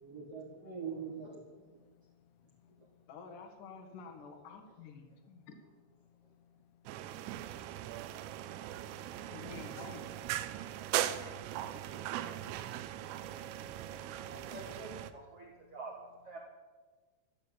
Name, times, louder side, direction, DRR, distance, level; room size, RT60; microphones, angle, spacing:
voice 1, 0.0-1.8 2.8-2.9 14.2-15.9 16.2-16.5, right 5 dB, 55° right, -2 dB, 1.7 m, -45 dB
voice 2, 1.8-3.0 6.0-9.3 10.9-14.3 15.6-15.7, left 10 dB, 80° left, 11 dB, 2.5 m, -66 dB
voice 3, 3.1-5.6 8.6-8.7 9.3-10.1, left 5 dB, 55° left, 4 dB, 2.7 m, -49 dB
sound 1, 6.9-15.1, right 12 dB, 80° right, 2.7 m, -39 dB
14.0 x 9.9 x 7.7 m, 1.4 s
omnidirectional pair, 5.3 m